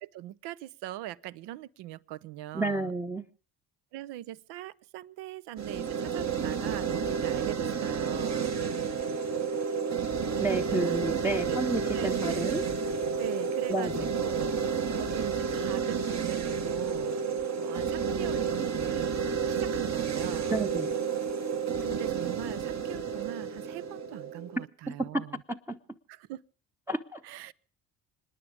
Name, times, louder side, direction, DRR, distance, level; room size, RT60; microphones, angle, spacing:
voice 1, 0.0-2.9 3.9-8.6 10.5-11.0 11.3-11.6 11.9-12.4 13.2-17.1 17.5-20.7 21.8-25.4 26.1-26.4 27.2-27.5, right 14 dB, 80° right, 0.6 m, -41 dB
voice 2, 2.5-3.2 10.4-12.6 13.7-14.1 20.5-20.9 25.5-25.8 26.9-27.2, right 2 dB, 5° right, 0.7 m, -31 dB
sound 1, 5.6-24.6, right 6 dB, 45° right, 1.1 m, -31 dB
26.0 x 9.9 x 5.0 m
supercardioid pair, 60°, 40 cm